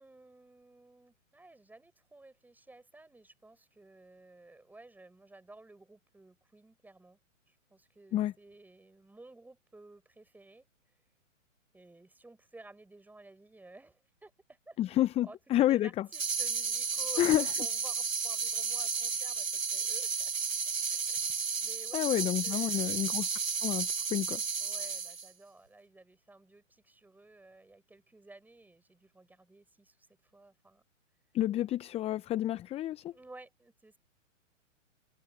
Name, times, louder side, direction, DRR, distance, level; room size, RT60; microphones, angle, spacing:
voice 1, 0.0-7.2 7.5-10.9 11.7-14.8 15.2-20.3 20.9-21.2 21.6-23.1 24.6-30.8 33.0-34.0, right 2 dB, 5° right, 6.0 m, -54 dB
voice 2, 14.8-16.1 17.2-17.5 21.9-23.3 23.6-24.4 31.3-33.1, left 13 dB, 15° left, 0.9 m, -29 dB
sound 1, 16.1-25.3, right 5 dB, 80° right, 1.9 m, -33 dB
figure-of-eight pair, 120°, 39 cm